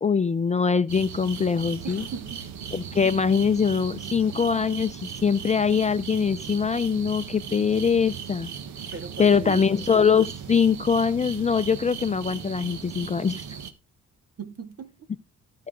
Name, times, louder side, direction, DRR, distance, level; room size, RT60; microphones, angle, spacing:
voice 1, 0.0-2.0 2.7-8.5 9.2-13.4, left 6 dB, 25° left, 0.5 m, -23 dB
sound 1, 0.9-13.7, right 7 dB, 70° right, 1.3 m, -37 dB
voice 2, 1.8-2.5 8.9-9.7 14.4-14.9, right 5 dB, 50° right, 2.4 m, -38 dB
14.5 x 5.6 x 3.8 m
cardioid pair, 90°, 30 cm